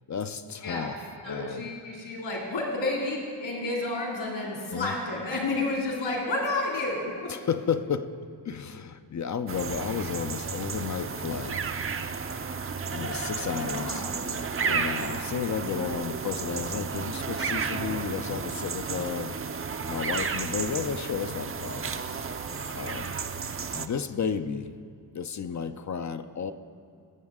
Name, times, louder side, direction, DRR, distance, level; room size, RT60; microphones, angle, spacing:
voice 1, 0.1-1.7 4.7-4.9 7.3-8.1 8.4-11.8 12.9-14.1 14.6-19.4 19.9-21.9 22.7-23.2 23.7-24.7 25.1-26.5, left 7 dB, 40° left, 10 dB, 0.5 m, -32 dB
voice 2, 1.2-7.3 13.7-14.1, left 2 dB, 65° left, -2 dB, 2.5 m, -30 dB
sound 1, 9.5-23.9, right 5 dB, 30° right, 0.6 m, -32 dB
20.0 x 7.1 x 3.6 m, 2.4 s
supercardioid pair, 45°, 47 cm